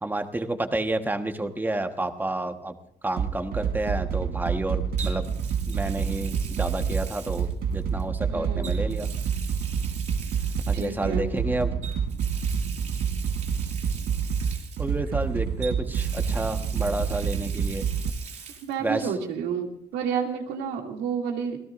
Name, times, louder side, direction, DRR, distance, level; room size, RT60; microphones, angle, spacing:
voice 1, 0.0-2.8 3.0-5.2 5.7-9.1 10.7-11.7 14.8-17.9 18.8-19.1, right 2 dB, 10° right, 7 dB, 1.3 m, -30 dB
Water tap faucet, 2.0-2.2 5.0-8.0 8.6-11.1 11.8-15.2 15.6-18.8 19.1-19.2 20.7-20.8, right 6 dB, 45° right, 4.6 m, -42 dB
sound 1, 3.2-18.1, right 7 dB, 60° right, 1.4 m, -28 dB
voice 2, 8.3-8.7 10.7-11.3 18.6-21.6, right 7 dB, 90° right, 1 dB, 2.6 m, -30 dB
27.5 x 17.5 x 2.6 m, 0.69 s
cardioid pair, 110°, 17 cm